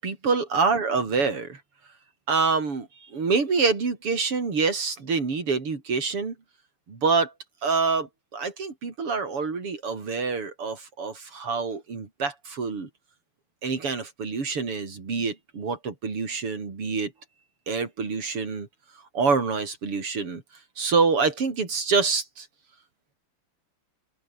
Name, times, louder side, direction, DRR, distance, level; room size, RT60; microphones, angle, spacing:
voice 1, 0.0-1.6 2.3-6.3 6.9-7.3 7.6-12.9 13.6-17.1 17.7-18.7 19.1-20.4 20.8-22.5, right 4 dB, 85° right, 5.0 m, -26 dB
open air
omnidirectional pair, 2.4 m